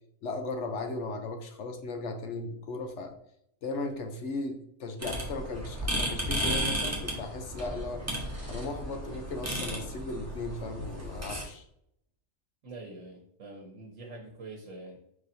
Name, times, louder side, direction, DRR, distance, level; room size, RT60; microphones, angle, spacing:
voice 1, 0.2-3.2 3.6-8.0 8.5-11.6, left 2 dB, 65° left, 6 dB, 0.9 m, -36 dB
sound 1, 5.0-11.4, equal, 15° right, 1.0 m, -34 dB
voice 2, 12.6-15.0, right 2 dB, 70° right, 1 dB, 1.2 m, -45 dB
4.9 x 4.1 x 2.6 m, 0.74 s
omnidirectional pair, 1.4 m